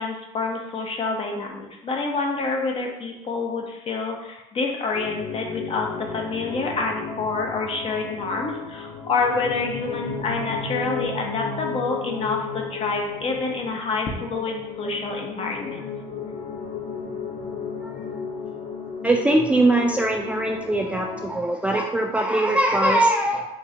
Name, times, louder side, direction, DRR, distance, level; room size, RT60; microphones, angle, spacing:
voice 1, 0.0-15.9, left 3 dB, 40° left, 1 dB, 0.9 m, -27 dB
sound 1, 4.9-21.4, left 5 dB, 70° left, 0.8 m, -34 dB
voice 2, 19.0-23.5, right 1 dB, 10° right, 1 dB, 0.3 m, -21 dB
4.8 x 2.4 x 2.8 m, 0.90 s
supercardioid pair, 95°, 15 cm